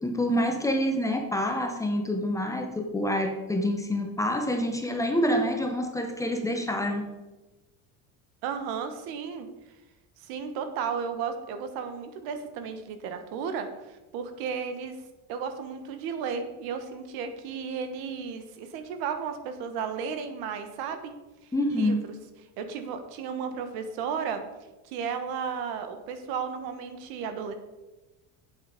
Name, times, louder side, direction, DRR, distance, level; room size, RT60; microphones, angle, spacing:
voice 1, 0.0-7.0 21.5-22.0, equal, 10° left, 3 dB, 0.8 m, -27 dB
voice 2, 8.4-9.5 10.2-15.0 15.3-21.1 21.4-22.0 22.6-24.4 24.8-27.5, right 6 dB, 70° right, 8 dB, 1.5 m, -34 dB
8.4 x 7.8 x 5.2 m, 1.1 s
cardioid pair, 160°, 39 cm